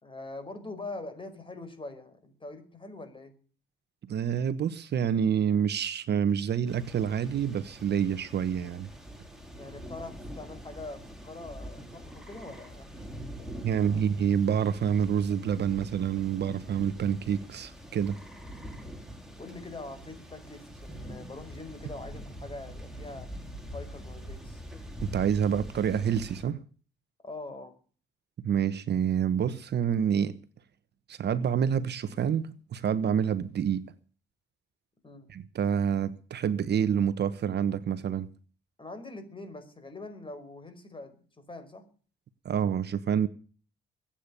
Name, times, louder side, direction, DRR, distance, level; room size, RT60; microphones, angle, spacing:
voice 1, 0.0-3.3 9.6-13.1 13.4-14.1 19.4-23.3 23.7-24.6 27.2-27.7 35.0-35.3 38.8-41.8, left 2 dB, 25° left, 5.1 m, -43 dB
voice 2, 4.0-8.9 13.6-18.2 25.0-26.6 28.4-30.4 31.1-33.8 35.3-38.3 42.4-43.3, right 8 dB, 55° right, 1.2 m, -27 dB
sound 1, 6.7-26.4, equal, ahead, 4.5 m, -44 dB
22.5 x 8.9 x 6.9 m
cardioid pair, 90°, 20 cm